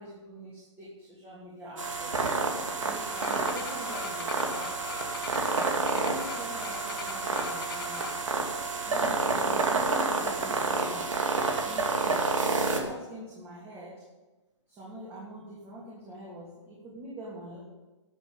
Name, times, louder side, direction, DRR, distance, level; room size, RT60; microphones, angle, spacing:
voice 1, 0.0-2.1 2.5-5.0 5.9-8.2 8.9-11.1 11.6-14.0 14.7-17.6, right 1 dB, 15° right, -6 dB, 3.0 m, -44 dB
sound 1, 1.8-12.8, right 3 dB, 85° right, 2.7 m, -29 dB
sound 2, 3.1-8.2, left 8 dB, 45° left, 1.1 m, -41 dB
12.5 x 7.8 x 9.0 m, 1.1 s
hypercardioid pair, 155°, 16 cm